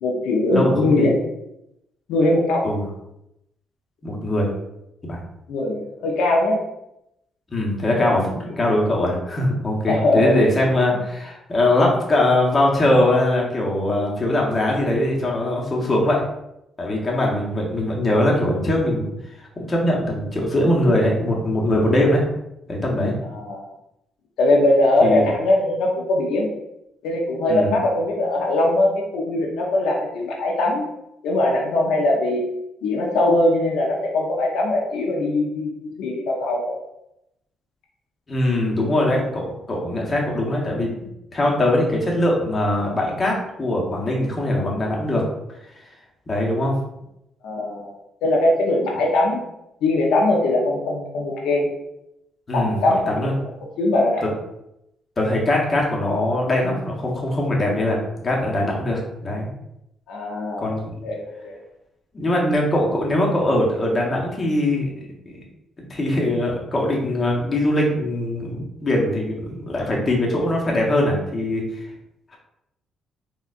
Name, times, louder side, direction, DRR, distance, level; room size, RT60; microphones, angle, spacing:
voice 1, 0.0-1.2 2.1-2.6 5.5-6.6 7.9-8.1 9.0-9.2 9.9-10.4 10.9-11.0 23.3-23.6 24.4-26.5 27.0-30.9 31.2-32.4 32.8-36.7 47.4-47.9 48.2-49.4 49.8-51.7 52.5-53.2 53.8-54.3 60.1-60.7 61.0-61.6, left 2 dB, 85° left, -2 dB, 0.6 m, -21 dB
voice 2, 0.5-1.1 2.6-2.9 4.0-4.5 5.0-5.2 7.5-16.2 16.8-19.1 19.4-22.3 22.7-23.1 25.0-25.3 27.5-27.7 38.3-40.9 41.3-45.2 46.3-46.7 52.5-53.3 55.2-59.5 60.6-60.9 62.1-65.4 65.8-71.9, left 1 dB, 30° left, -2 dB, 0.9 m, -21 dB
4.1 x 2.4 x 2.4 m, 0.84 s
cardioid pair, 90°, 0 cm